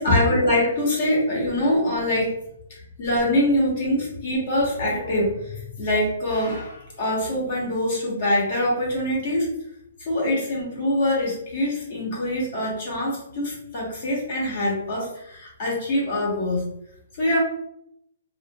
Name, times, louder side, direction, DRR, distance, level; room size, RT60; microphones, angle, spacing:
voice 1, 0.0-2.3 2.7-9.5 10.0-16.6 17.2-17.4, left 1 dB, 45° left, -4 dB, 1.0 m, -24 dB
2.4 x 2.3 x 2.6 m, 0.76 s
hypercardioid pair, 170°, 0 cm